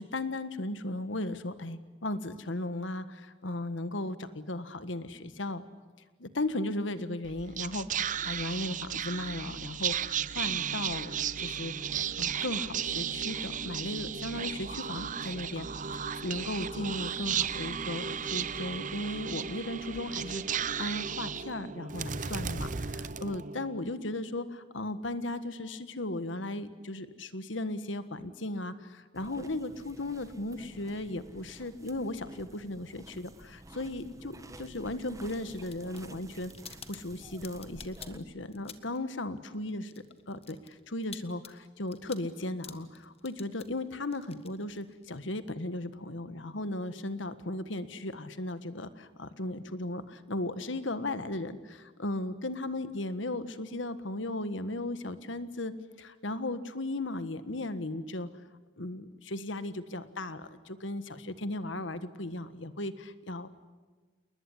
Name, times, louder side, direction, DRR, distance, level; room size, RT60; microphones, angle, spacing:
voice 1, 0.0-5.6 6.2-7.9 8.2-11.7 12.2-15.7 15.9-36.5 36.9-39.9 40.3-55.7 56.0-58.3 58.8-63.5, left 2 dB, 80° left, 12 dB, 1.6 m, -36 dB
Whispering, 7.2-23.8, right 7 dB, 40° right, 0.8 m, -34 dB
sound 1, 29.1-38.2, right 1 dB, 15° right, 1.4 m, -51 dB
sound 2, 35.2-39.1 39.3-45.2, left 8 dB, 30° left, 1.6 m, -50 dB
29.0 x 20.5 x 9.9 m, 1.4 s
head